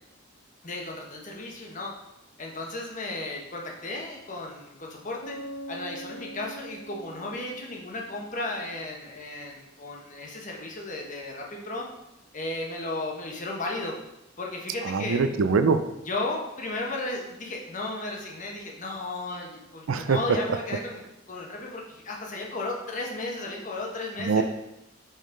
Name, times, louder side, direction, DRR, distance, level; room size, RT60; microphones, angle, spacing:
voice 1, 0.6-1.9 2.4-5.4 5.7-11.9 12.3-14.0 14.4-15.2 16.0-21.0 21.3-24.4, left 2 dB, 40° left, -1 dB, 1.1 m, -34 dB
Bass guitar, 5.2-8.9, right 1 dB, 65° left, 0.8 m, -43 dB
voice 2, 14.9-15.9 19.9-20.2 24.2-24.4, right 5 dB, 75° right, 10 dB, 0.4 m, -23 dB
5.6 x 5.2 x 3.8 m, 0.89 s
head